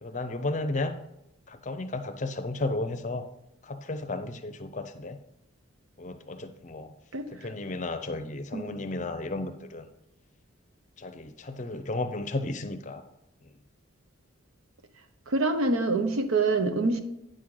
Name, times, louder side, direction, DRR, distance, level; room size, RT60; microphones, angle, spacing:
voice 1, 0.0-1.0 1.5-3.2 3.6-5.2 6.0-6.9 7.3-9.9 11.0-13.0, left 2 dB, 35° left, 9 dB, 0.6 m, -33 dB
voice 2, 8.5-8.8 15.3-17.0, right 3 dB, 75° right, 8 dB, 0.8 m, -26 dB
9.1 x 6.2 x 3.8 m, 0.85 s
head